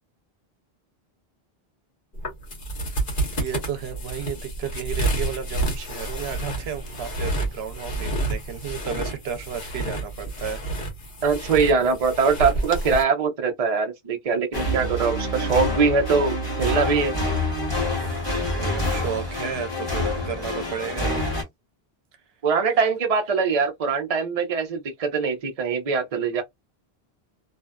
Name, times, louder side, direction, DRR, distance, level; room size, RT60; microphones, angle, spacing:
sound 1, 2.1-13.0, right 2 dB, 55° left, 1.1 m, -29 dB
voice 1, 3.4-10.6 18.5-21.3, right 8 dB, 85° right, 0.9 m, -33 dB
voice 2, 11.2-17.2 22.4-26.4, right 5 dB, 40° right, 0.7 m, -22 dB
sound 2, 14.5-21.4, left 1 dB, 25° left, 1.2 m, -27 dB
2.6 x 2.3 x 2.2 m
omnidirectional pair, 1.0 m